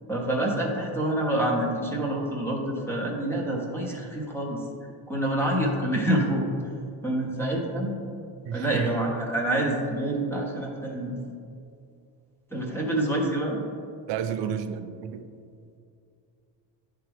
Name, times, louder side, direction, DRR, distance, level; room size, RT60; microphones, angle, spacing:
voice 1, 0.1-4.6 5.1-6.4 7.0-7.9 8.5-11.2 12.5-13.6, right 1 dB, 5° left, -2 dB, 0.5 m, -27 dB
voice 2, 8.4-8.9 14.1-15.3, right 8 dB, 85° right, 9 dB, 0.5 m, -31 dB
10.0 x 3.4 x 3.4 m, 2.5 s
cardioid pair, 180°, 41 cm